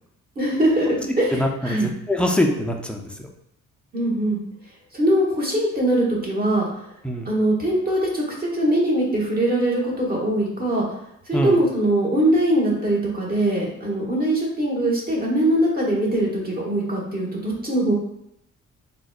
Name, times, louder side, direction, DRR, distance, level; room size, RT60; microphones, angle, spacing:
voice 1, 0.4-1.9 3.9-4.4 4.9-6.6 7.2-10.9 11.3-17.9, right 1 dB, 30° right, -3 dB, 1.0 m, -22 dB
voice 2, 1.3-3.3 7.0-7.3 11.3-11.5, left 1 dB, 5° left, 1 dB, 0.3 m, -23 dB
3.7 x 2.1 x 2.3 m, 0.78 s
cardioid pair, 105°, 30 cm